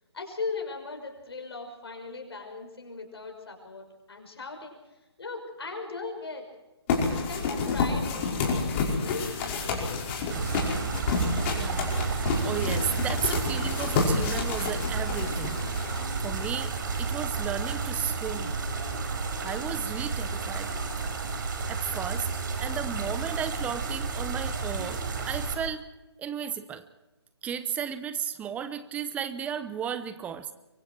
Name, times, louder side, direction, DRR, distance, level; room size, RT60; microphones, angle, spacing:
voice 1, 0.1-6.4 6.9-8.5 8.9-10.6, left 4 dB, 65° left, 3 dB, 5.7 m, -39 dB
sound 1, 6.9-16.4, left 4 dB, 30° left, 5.3 m, -29 dB
sound 2, 10.3-25.6, right 4 dB, 45° right, 4.6 m, -31 dB
voice 2, 11.6-15.7 16.2-16.7 17.0-18.5 19.4-20.7 21.7-22.3 22.6-25.8 26.2-26.8 27.4-30.5, right 8 dB, 10° right, 12 dB, 0.9 m, -34 dB
25.0 x 24.0 x 4.6 m, 1.0 s
figure-of-eight pair, 145°, 14 cm